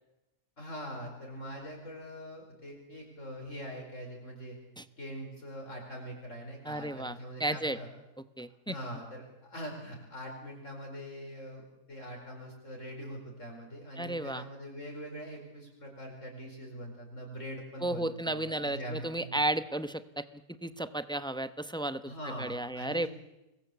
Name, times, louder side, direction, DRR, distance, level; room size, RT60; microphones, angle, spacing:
voice 1, 0.6-4.6 5.0-7.9 8.7-19.4 22.1-23.1, equal, 55° left, 0 dB, 5.2 m, -43 dB
voice 2, 6.6-7.8 8.4-8.7 14.0-14.4 17.8-20.3 20.6-22.1 22.4-23.1, right 1 dB, 5° left, 12 dB, 0.7 m, -33 dB
27.0 x 21.5 x 8.3 m, 0.97 s
omnidirectional pair, 1.5 m